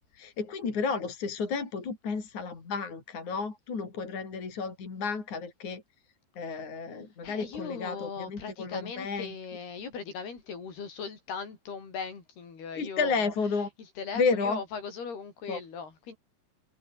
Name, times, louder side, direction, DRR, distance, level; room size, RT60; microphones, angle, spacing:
voice 1, 0.1-5.8 6.4-9.3 12.8-13.7 14.2-14.6 15.5-15.6, left 4 dB, 50° left, 6.0 m, -32 dB
voice 2, 7.2-13.3 14.0-16.2, left 5 dB, 80° left, 7.2 m, -39 dB
omnidirectional pair, 4.5 m